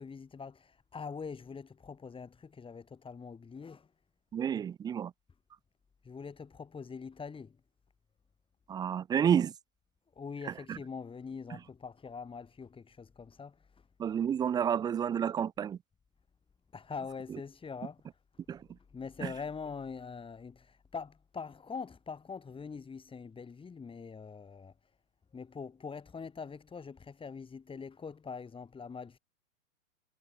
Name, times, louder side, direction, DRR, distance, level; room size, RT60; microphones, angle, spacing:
voice 1, 0.0-3.9 6.0-7.6 10.2-13.9 16.7-18.0 18.9-24.7 25.3-29.2, left 5 dB, 10° left, 4.8 m, -43 dB
voice 2, 4.3-5.1 8.7-9.5 10.4-10.8 14.0-15.8 18.5-18.6 19.2-19.3, right 8 dB, 10° right, 0.5 m, -30 dB
hypercardioid pair, 130°, 43 cm